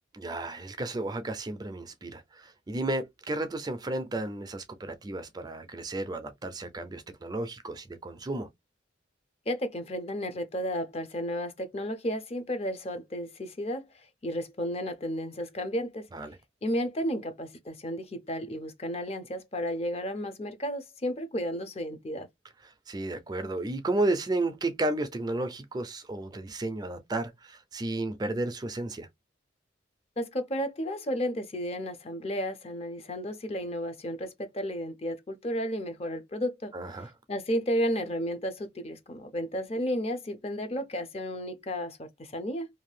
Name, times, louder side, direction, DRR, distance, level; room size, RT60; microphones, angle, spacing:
voice 1, 0.1-8.5 16.1-16.4 22.9-29.1 36.7-37.1, right 2 dB, 20° right, 0.4 m, -33 dB
voice 2, 9.5-13.8 14.2-16.1 16.6-22.3 30.2-36.7 37.3-42.7, equal, 30° left, 0.5 m, -33 dB
2.6 x 2.3 x 3.2 m
head